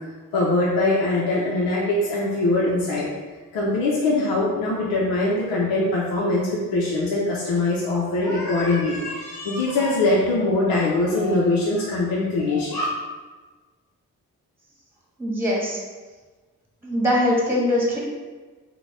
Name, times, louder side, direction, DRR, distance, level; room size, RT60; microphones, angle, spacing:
voice 1, 0.3-3.1 3.5-12.8, left 2 dB, 80° left, -4 dB, 0.7 m, -22 dB
voice 2, 15.2-15.8 16.8-18.0, left 1 dB, 5° right, -3 dB, 1.3 m, -22 dB
3.9 x 2.2 x 3.4 m, 1.3 s
supercardioid pair, 50°, 35 cm